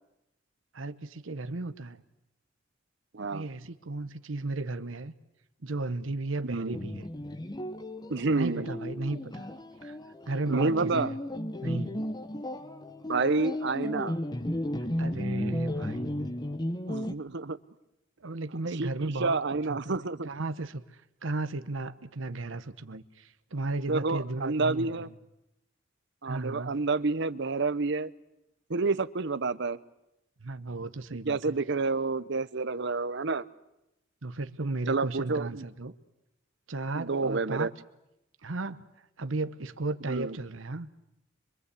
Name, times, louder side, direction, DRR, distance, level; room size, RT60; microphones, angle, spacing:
voice 1, 0.7-2.0 3.3-5.1 5.6-7.1 8.3-9.5 9.8-10.0 10.3-11.2 11.6-12.1 15.0-16.3 18.2-25.1 26.3-26.8 30.4-31.5 34.2-35.9 36.7-37.7 38.4-40.9, right 2 dB, 90° right, 1.0 m, -35 dB
voice 2, 3.1-3.5 6.4-6.8 8.1-8.7 10.5-11.1 13.1-14.2 16.9-17.6 18.8-18.9 19.2-20.3 23.9-25.1 26.2-28.1 28.7-29.8 31.3-33.4 34.9-35.6 37.0-37.7 40.1-40.4, right 3 dB, 65° right, 0.9 m, -29 dB
sound 1, 6.7-17.1, left 1 dB, 20° left, 1.0 m, -34 dB
25.5 x 24.5 x 8.4 m
head